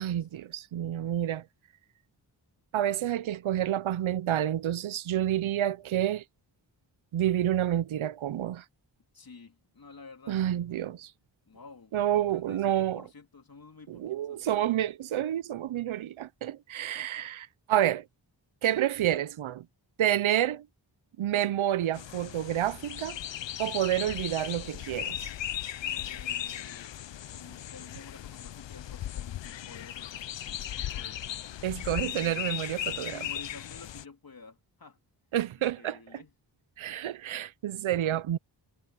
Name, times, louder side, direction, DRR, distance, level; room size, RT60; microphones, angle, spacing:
voice 1, 0.0-1.4 2.7-6.2 7.1-8.6 10.3-11.1 11.9-13.0 13.9-18.0 18.6-19.7 20.0-20.7 21.2-23.2 23.6-25.2 31.6-33.3 35.3-36.0 36.8-38.4, right 11 dB, 85° right, 0.7 m, -29 dB
voice 2, 9.1-10.6 11.4-14.5 16.9-17.3 25.8-31.4 31.8-32.5 33.1-35.0 35.6-36.3, left 4 dB, 50° left, 3.3 m, -51 dB
sound 1, 21.9-34.1, left 11 dB, 65° left, 0.7 m, -37 dB
cardioid pair, 65°, 47 cm